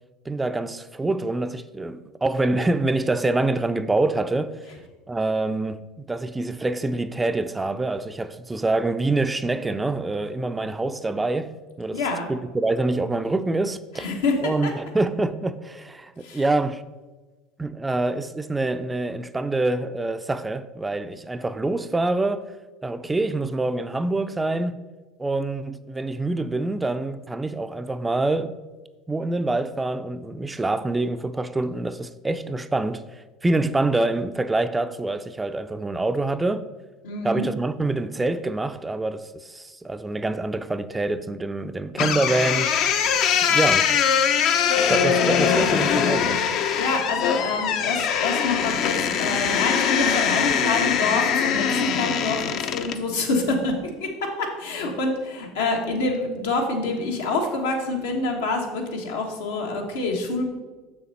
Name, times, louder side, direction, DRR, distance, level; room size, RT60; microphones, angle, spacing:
voice 1, 0.3-4.5 5.1-12.0 12.3-14.1 14.4-16.8 17.6-22.5 22.8-24.8 25.2-28.6 29.1-36.7 37.2-42.7 43.5-43.9 44.9-46.4, right 2 dB, 15° right, 0.4 m, -26 dB
voice 2, 11.9-12.3 13.9-14.4 14.6-14.7 16.2-16.4 37.0-37.4 46.8-60.5, left 3 dB, 85° left, 1.4 m, -26 dB
sound 1, 42.0-53.0, left 7 dB, 60° left, 0.6 m, -22 dB
6.5 x 6.5 x 4.2 m
hypercardioid pair, 85°, 0 cm